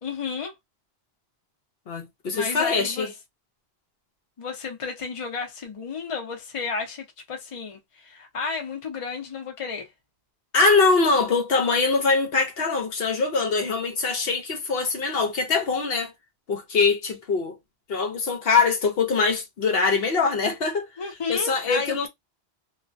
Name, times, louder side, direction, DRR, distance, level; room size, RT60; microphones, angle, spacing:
voice 1, 0.0-0.5 2.3-3.1 4.4-9.9 21.0-22.1, left 5 dB, 35° left, 0.7 m, -32 dB
voice 2, 1.9-3.1 10.5-16.1 16.5-17.6 17.9-20.9 21.3-22.1, left 4 dB, 70° left, 0.9 m, -23 dB
2.4 x 2.1 x 2.5 m
omnidirectional pair, 1.1 m